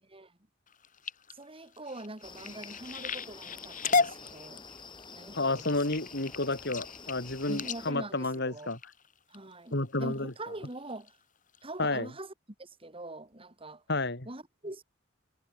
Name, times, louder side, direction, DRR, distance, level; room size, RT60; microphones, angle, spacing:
sound 1, 0.7-9.4 9.9-10.3 10.7-11.1 11.5-11.6 11.9-12.0, left 4 dB, 40° left, 5.2 m, -35 dB
voice 1, 1.3-4.7 5.1-5.8 7.5-8.7 9.3-11.2 11.6-12.3 12.6-13.8 14.3-14.8, right 2 dB, 30° right, 3.6 m, -43 dB
sound 2, 2.2-7.9, left 4 dB, 25° left, 4.1 m, -48 dB
voice 2, 5.3-8.8 9.7-10.3 11.8-12.1 13.9-14.3, left 2 dB, 55° left, 3.4 m, -31 dB
head